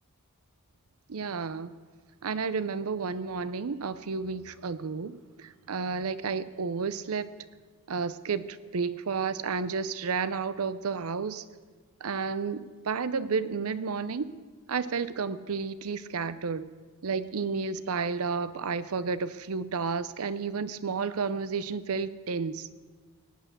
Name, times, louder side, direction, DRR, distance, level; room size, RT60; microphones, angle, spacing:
voice 1, 1.1-1.7 2.2-7.3 7.9-11.4 12.0-14.3 14.7-16.7 17.0-22.7, right 5 dB, 75° right, 15 dB, 0.6 m, -31 dB
17.5 x 9.0 x 6.6 m, 1.4 s
head